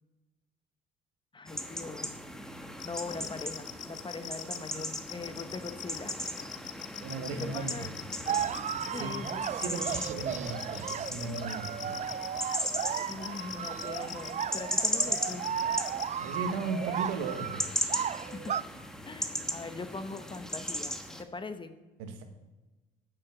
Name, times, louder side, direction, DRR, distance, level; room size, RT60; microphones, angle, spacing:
voice 1, 1.3-2.2 2.8-6.1 7.3-7.9 8.9-9.8 13.1-15.5 18.3-18.5 19.1-20.9 21.2-21.8, left 3 dB, 25° left, 10 dB, 1.0 m, -41 dB
sound 1, 1.5-21.2, equal, 5° left, 1.2 m, -37 dB
sound 2, 2.8-16.1, left 14 dB, 65° left, 0.8 m, -41 dB
voice 2, 7.0-7.9 9.0-9.1 9.6-12.0 16.2-18.0 22.0-22.2, right 4 dB, 85° right, 6 dB, 1.4 m, -36 dB
sound 3, 8.3-18.6, right 9 dB, 35° right, 0.4 m, -35 dB
9.1 x 7.1 x 7.1 m, 1.2 s
supercardioid pair, 75°, 21 cm